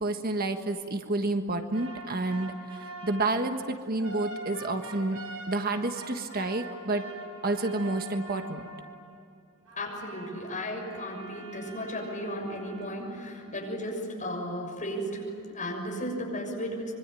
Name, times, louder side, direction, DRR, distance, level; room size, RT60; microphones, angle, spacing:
voice 1, 0.0-2.5 3.0-5.2 5.5-7.0 7.4-8.6, right 2 dB, 45° right, 6 dB, 1.4 m, -29 dB
sound 1, 1.7-9.2 9.7-13.7, right 2 dB, 85° right, 4.8 m, -44 dB
voice 2, 9.8-17.0, equal, 35° left, 1 dB, 6.7 m, -35 dB
25.5 x 24.0 x 9.2 m, 2.4 s
head